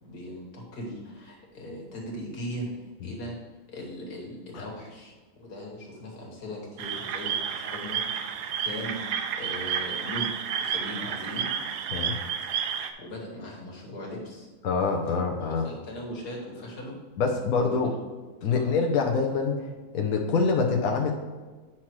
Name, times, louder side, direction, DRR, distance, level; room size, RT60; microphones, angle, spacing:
voice 1, 0.0-3.4 3.7-8.4 8.7-9.0 9.3-11.5 13.0-14.5 15.6-17.0 17.6-18.0 18.5-18.7, equal, 90° left, -1 dB, 2.1 m, -39 dB
sound 1, 6.8-12.9, right 8 dB, 85° right, 1.2 m, -31 dB
voice 2, 14.6-15.7 17.2-17.9 18.4-19.6 19.9-21.1, left 4 dB, 70° left, 2 dB, 1.1 m, -25 dB
8.9 x 5.9 x 3.1 m, 1.3 s
omnidirectional pair, 1.7 m